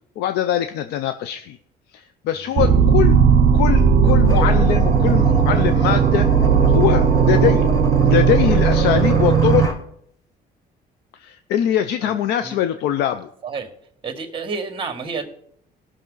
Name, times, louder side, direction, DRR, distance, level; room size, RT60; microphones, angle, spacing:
voice 1, 0.2-1.6 1.9-3.2 3.5-6.3 6.7-7.7 8.0-9.7 11.1-13.3, left 10 dB, 80° left, 10 dB, 0.6 m, -22 dB
voice 2, 2.3-2.7 12.0-12.2 12.4-12.6 13.4-13.7 14.0-15.3, right 4 dB, 30° right, 6 dB, 1.8 m, -30 dB
sound 1, 2.6-9.7, right 6 dB, 55° right, 0.9 m, -16 dB
sound 2, 4.0-9.8, right 1 dB, 20° left, 1.3 m, -29 dB
18.0 x 6.2 x 3.9 m, 0.67 s
cardioid pair, 110°, 17 cm